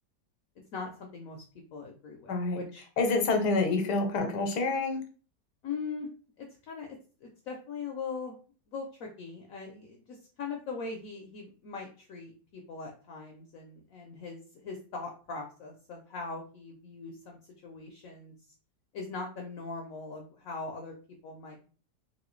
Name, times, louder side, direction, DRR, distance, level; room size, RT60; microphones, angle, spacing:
voice 1, 0.7-1.4 1.7-2.9 5.6-6.1 6.4-7.0 7.2-8.4 8.7-18.3 18.9-20.9 21.2-21.7, left 4 dB, 70° left, 1 dB, 0.9 m, -41 dB
voice 2, 3.0-5.0, left 3 dB, 85° left, 4 dB, 1.2 m, -27 dB
3.0 x 2.6 x 3.0 m, 0.39 s
omnidirectional pair, 1.8 m